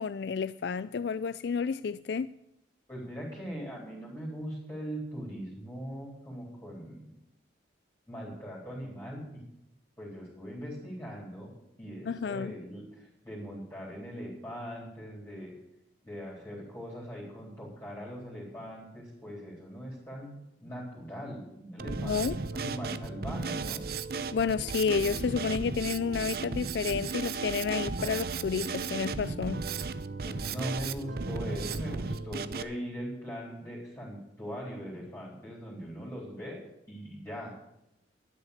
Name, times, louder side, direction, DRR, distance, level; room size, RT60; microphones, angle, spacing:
voice 1, 0.0-2.3 12.1-12.5 22.0-22.4 24.3-29.6, left 6 dB, 65° left, 0.4 m, -30 dB
voice 2, 2.9-7.1 8.1-9.4 10.0-11.5 11.8-15.5 16.0-23.8 30.2-36.6 36.9-37.5, equal, 15° left, 3.9 m, -40 dB
Drum kit, 21.8-32.6, right 4 dB, 55° right, 0.7 m, -35 dB
12.5 x 10.0 x 6.6 m
head